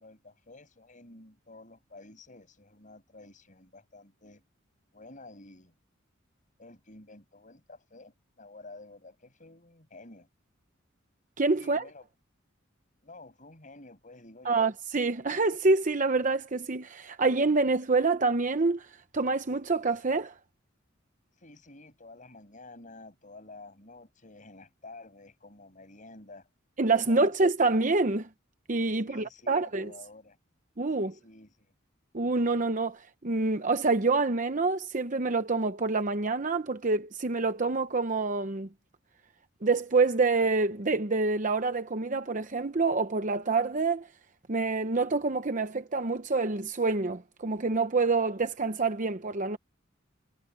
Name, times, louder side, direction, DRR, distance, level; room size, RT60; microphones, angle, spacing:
voice 1, 0.0-4.4 4.9-5.8 6.6-10.3 11.6-12.1 13.0-14.7 21.4-26.5 27.1-27.3 29.0-30.4 31.0-31.7, left 2 dB, 40° left, 7.0 m, -50 dB
voice 2, 11.4-11.8 14.4-20.3 26.8-28.3 28.7-29.9 30.8-31.1 32.1-38.7 39.6-44.1 44.5-49.6, right 3 dB, 40° right, 0.9 m, -27 dB
head